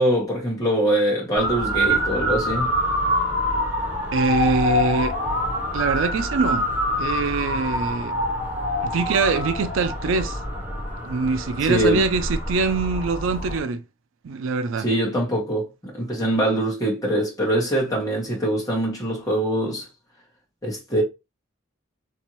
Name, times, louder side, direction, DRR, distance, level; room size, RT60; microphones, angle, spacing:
voice 1, 0.0-2.8 11.7-12.0 14.8-19.9 20.6-21.0, right 1 dB, 15° left, 1.4 m, -23 dB
Motor vehicle (road) / Siren, 1.3-13.6, equal, 10° right, 1.5 m, -26 dB
voice 2, 4.1-5.2 5.7-6.7 7.0-8.1 8.8-10.4 11.0-13.8 14.2-14.9, right 4 dB, 75° right, 0.4 m, -23 dB
3.4 x 2.8 x 3.0 m
head